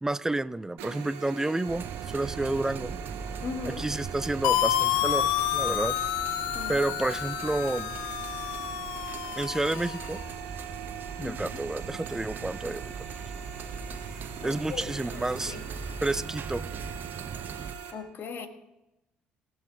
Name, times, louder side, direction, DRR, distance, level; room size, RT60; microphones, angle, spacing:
voice 1, 0.0-3.0 3.7-6.0 6.7-8.0 9.4-10.2 11.2-12.9 14.4-15.5 16.0-16.6, right 2 dB, 10° right, 17 dB, 0.5 m, -30 dB
sound 1, 0.8-17.9, right 10 dB, 80° right, 1.6 m, -42 dB
sound 2, 1.7-17.7, right 5 dB, 50° right, 0.9 m, -40 dB
voice 2, 3.4-3.8 6.5-6.7 11.2-11.4 14.4-14.8 15.1-15.6 17.9-18.5, left 6 dB, 55° left, 8 dB, 1.5 m, -38 dB
sound 3, 4.4-10.2, left 13 dB, 85° left, 0.4 m, -29 dB
18.5 x 6.4 x 4.8 m, 0.93 s
hypercardioid pair, 55°, 4 cm